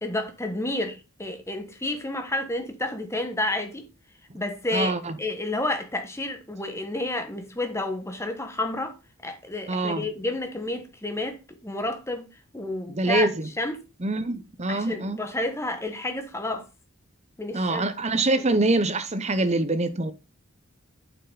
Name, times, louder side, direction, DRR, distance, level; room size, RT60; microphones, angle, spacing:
voice 1, 0.0-3.9 4.3-9.0 9.2-12.3 12.5-13.3 13.6-13.8 14.7-16.7 17.4-17.9, left 2 dB, 10° left, 1.4 m, -30 dB
voice 2, 4.7-5.2 9.7-10.1 12.9-13.5 14.0-15.2 17.5-20.1, right 2 dB, 30° right, 1.0 m, -25 dB
8.4 x 6.9 x 4.1 m
head